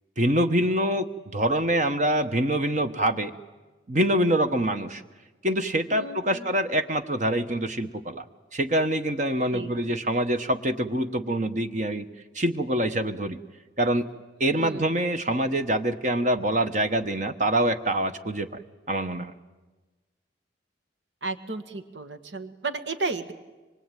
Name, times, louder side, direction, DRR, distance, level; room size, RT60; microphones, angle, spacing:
voice 1, 0.2-3.3 3.9-5.0 5.4-8.2 8.5-12.1 12.3-13.4 13.8-14.1 14.4-18.6 18.9-19.3, right 1 dB, 40° right, 8 dB, 1.1 m, -25 dB
voice 2, 5.9-6.5 9.5-10.0 14.4-14.8 21.2-23.3, right 3 dB, 75° right, 9 dB, 1.8 m, -34 dB
25.5 x 23.0 x 9.1 m, 1.2 s
head